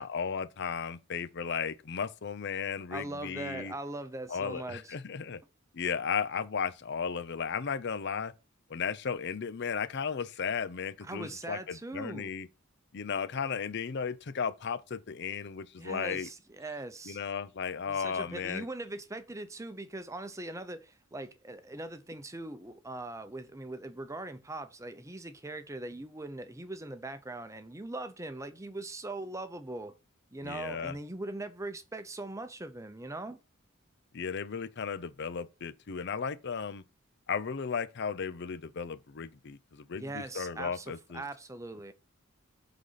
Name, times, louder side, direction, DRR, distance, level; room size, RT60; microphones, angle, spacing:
voice 1, 0.0-3.7 4.3-5.4 5.7-8.3 8.7-12.5 12.9-16.3 17.1-18.7 30.4-31.0 34.1-36.8 37.3-41.2, left 6 dB, 55° left, 0.5 m, -35 dB
voice 2, 2.9-4.9 11.0-12.3 15.8-17.2 17.9-29.9 30.3-33.4 39.9-41.9, right 2 dB, 15° right, 0.7 m, -41 dB
8.1 x 4.1 x 5.6 m
head